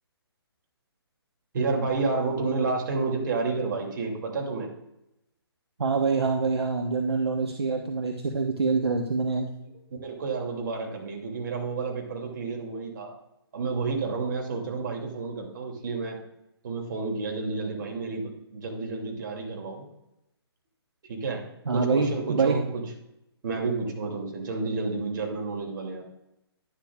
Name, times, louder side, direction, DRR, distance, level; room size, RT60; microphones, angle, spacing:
voice 1, 1.5-4.7 9.6-9.7 10.0-13.1 13.5-16.2 16.6-19.8 21.1-21.4 21.7-22.8 23.4-26.0, right 4 dB, 50° right, 0 dB, 2.6 m, -30 dB
voice 2, 5.8-9.5 21.7-22.5, right 4 dB, 70° right, 3 dB, 1.0 m, -25 dB
11.0 x 11.0 x 2.4 m, 0.86 s
figure-of-eight pair, 135°, 14 cm